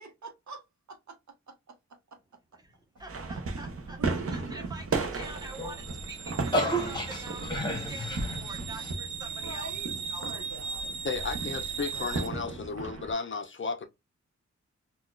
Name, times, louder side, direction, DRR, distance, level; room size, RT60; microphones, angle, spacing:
voice 1, 0.0-1.2 1.5-1.8 4.0-5.1 9.2-11.0 11.9-12.6, right 3 dB, 70° right, 1.0 m, -46 dB
voice 2, 2.6-10.5 11.8-11.9, right 2 dB, 15° right, 0.9 m, -46 dB
sound 1, 3.1-13.1, right 3 dB, 50° right, 0.7 m, -36 dB
sound 2, 5.2-12.3, right 6 dB, 85° right, 0.5 m, -38 dB
sound 3, 5.5-8.9, equal, 15° left, 0.9 m, -32 dB
voice 3, 11.0-13.9, left 4 dB, 40° left, 0.5 m, -34 dB
4.1 x 2.3 x 2.3 m
wide cardioid pair, 145°, 29 cm